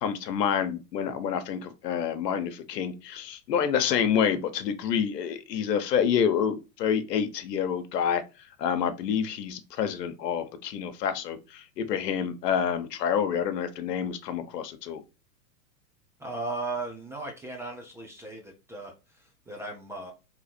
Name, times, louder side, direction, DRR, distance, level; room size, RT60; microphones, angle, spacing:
voice 1, 0.0-8.2 8.6-15.0, left 8 dB, 75° left, 1.0 m, -28 dB
voice 2, 16.2-20.1, right 2 dB, 5° right, 0.6 m, -37 dB
3.9 x 2.9 x 4.2 m
hypercardioid pair, 130°, 49 cm